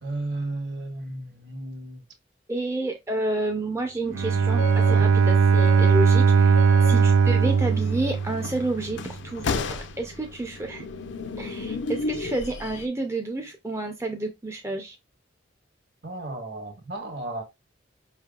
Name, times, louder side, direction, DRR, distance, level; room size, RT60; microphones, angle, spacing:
voice 1, 0.0-2.0 4.8-5.1 16.0-17.4, right 2 dB, 60° right, 1.3 m, -34 dB
voice 2, 2.5-10.8 11.4-15.0, right 2 dB, 15° right, 0.5 m, -30 dB
sound 1, 4.0-12.9, left 3 dB, 65° left, 0.5 m, -34 dB
Bowed string instrument, 4.1-8.9, right 5 dB, 85° right, 0.4 m, -19 dB
4.9 x 3.3 x 2.3 m
head